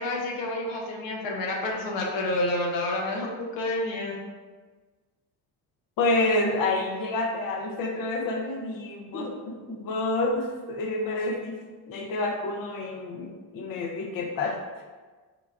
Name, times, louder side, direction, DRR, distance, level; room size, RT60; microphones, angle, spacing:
voice 1, 0.0-4.3 9.1-9.3, left 1 dB, 80° left, -1 dB, 0.8 m, -29 dB
voice 2, 6.0-11.6 11.9-14.6, left 2 dB, 50° left, 1 dB, 0.6 m, -28 dB
3.9 x 2.2 x 3.3 m, 1.4 s
supercardioid pair, 70°, 44 cm